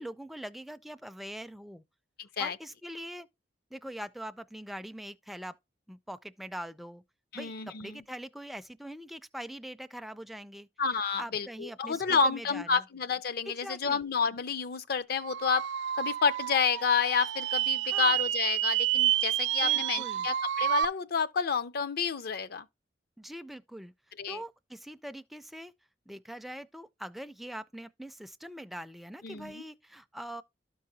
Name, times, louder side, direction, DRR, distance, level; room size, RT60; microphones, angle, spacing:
voice 1, 0.0-1.8 2.4-3.3 3.7-5.6 5.9-7.0 7.3-10.7 11.2-12.8 13.5-14.0 17.8-18.2 19.6-20.3 23.2-23.9 24.3-25.7 26.1-30.4, equal, ahead, 0.3 m, -43 dB
voice 2, 2.2-2.6 7.3-8.0 10.8-15.6 16.0-22.7 24.2-24.4 29.2-29.6, left 5 dB, 55° left, 0.5 m, -30 dB
sound 1, 15.2-20.8, right 12 dB, 75° right, 0.3 m, -29 dB
12.5 x 4.7 x 2.7 m
head